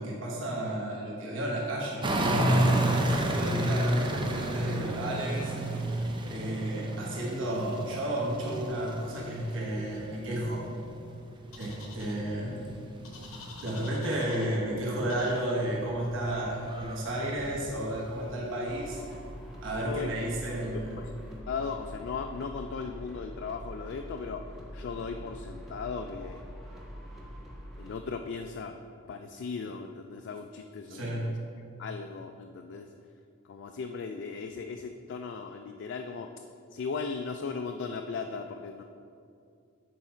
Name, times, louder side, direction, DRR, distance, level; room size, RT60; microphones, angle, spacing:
voice 1, 0.0-10.6 11.6-12.7 13.6-19.0 19.6-21.0 30.9-31.3, right 1 dB, 65° right, -4 dB, 1.2 m, -33 dB
sound 1, 2.0-14.0 14.3-19.2 19.8-19.9, right 1 dB, 20° right, 0.5 m, -32 dB
sound 2, 11.5-12.1 13.0-14.6 15.1-15.5, left 3 dB, 90° left, 1.1 m, -47 dB
sound 3, 18.7-27.9, equal, ahead, 0.9 m, -44 dB
voice 2, 20.7-21.1 21.5-24.4 24.7-26.4 27.8-28.8 29.1-31.4 31.8-32.9 33.4-36.3 36.7-38.8, left 5 dB, 55° left, 5 dB, 0.3 m, -37 dB
8.1 x 4.8 x 4.3 m, 2.5 s
head